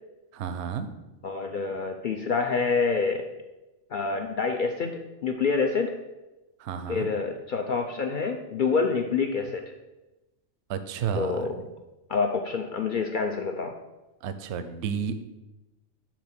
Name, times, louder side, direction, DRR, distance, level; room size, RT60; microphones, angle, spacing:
voice 1, 0.3-0.9 6.6-7.1 10.7-11.3 14.2-15.2, right 7 dB, 65° right, 10 dB, 0.8 m, -31 dB
voice 2, 1.2-3.3 3.9-5.9 6.9-9.6 11.1-11.6 12.1-13.7, left 4 dB, 70° left, 4 dB, 0.4 m, -27 dB
6.0 x 3.6 x 5.9 m, 1.0 s
omnidirectional pair, 1.4 m